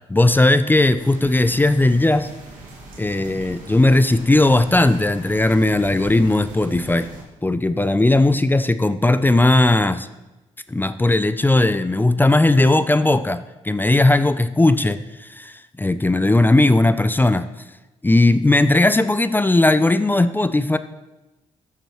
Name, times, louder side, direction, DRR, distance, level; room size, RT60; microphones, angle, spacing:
voice 1, 0.1-2.3 3.0-7.1 7.4-10.1 10.7-17.5 18.0-20.8, left 2 dB, 15° left, 12 dB, 0.5 m, -17 dB
sound 1, 0.9-7.2, right 3 dB, 65° right, 2.0 m, -39 dB
13.0 x 7.3 x 3.1 m, 1.0 s
hypercardioid pair, 50°, 15 cm